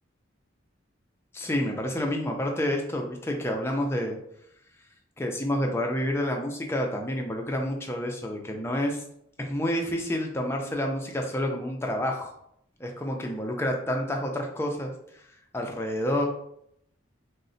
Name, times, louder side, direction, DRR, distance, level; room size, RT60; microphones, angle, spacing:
voice 1, 1.3-4.2 5.2-9.0 9.4-12.3 12.8-15.2 15.5-16.3, left 1 dB, 10° left, 1 dB, 0.3 m, -29 dB
3.8 x 2.0 x 2.6 m, 0.74 s
head